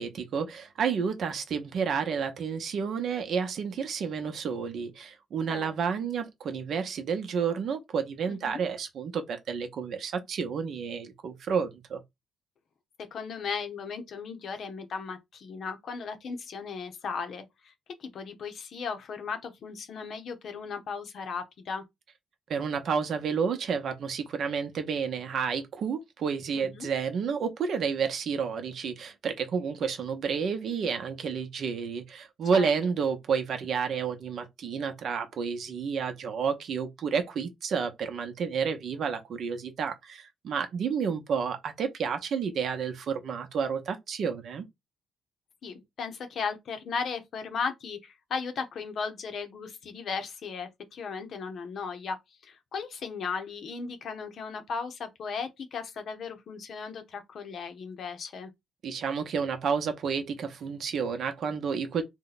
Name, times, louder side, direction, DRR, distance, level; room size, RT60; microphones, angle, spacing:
voice 1, 0.0-12.0 22.5-44.6 58.8-62.0, right 6 dB, 65° right, 0.7 m, -30 dB
voice 2, 8.3-8.6 13.1-17.7 18.0-21.8 26.5-26.9 32.5-32.7 45.6-52.2 52.4-58.5, left 5 dB, 60° left, 0.7 m, -36 dB
2.7 x 2.2 x 4.0 m
cardioid pair, 90°, 0 cm